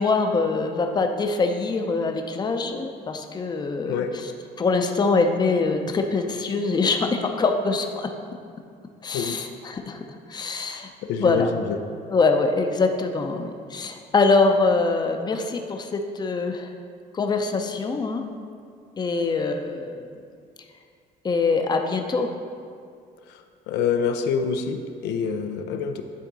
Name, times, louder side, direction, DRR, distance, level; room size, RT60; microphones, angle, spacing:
voice 1, 0.0-4.0 4.6-8.1 9.0-10.0 10.3-10.9 11.2-11.5 12.1-16.7 17.1-18.2 19.0-20.1 21.2-22.3, left 3 dB, 25° left, 5 dB, 0.6 m, -23 dB
voice 2, 11.0-11.8 23.3-26.0, left 6 dB, 85° left, 6 dB, 0.5 m, -26 dB
10.0 x 3.6 x 4.0 m, 2.3 s
cardioid pair, 110°, 17 cm